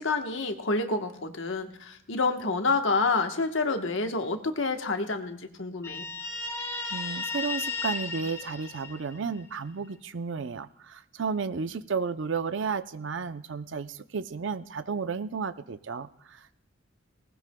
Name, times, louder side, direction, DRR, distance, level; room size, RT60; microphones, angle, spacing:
voice 1, 0.0-6.0, left 3 dB, 75° left, 5 dB, 1.2 m, -28 dB
Guitar, 5.8-9.4, left 4 dB, 15° left, 1.7 m, -34 dB
voice 2, 6.9-16.5, right 5 dB, 65° right, 12 dB, 0.6 m, -33 dB
19.0 x 19.0 x 2.2 m, 0.75 s
head